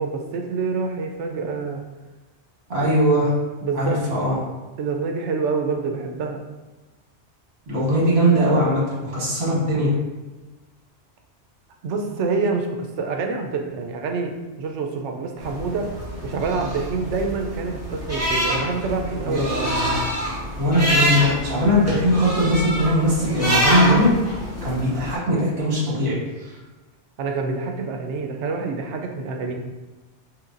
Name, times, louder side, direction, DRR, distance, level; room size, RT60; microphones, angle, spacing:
voice 1, 0.0-1.8 2.8-2.9 3.6-4.0 4.8-6.4 11.8-15.9 16.2-19.8 27.2-29.5, right 4 dB, 90° right, 3 dB, 0.9 m, -27 dB
voice 2, 2.7-3.3 3.7-4.4 7.7-9.9 19.2-20.0 20.6-24.1 24.6-26.5, equal, 65° right, -6 dB, 1.6 m, -20 dB
sound 1, 15.4-25.1, equal, 15° right, 1.1 m, -26 dB
4.4 x 3.2 x 2.5 m, 1.2 s
omnidirectional pair, 1.2 m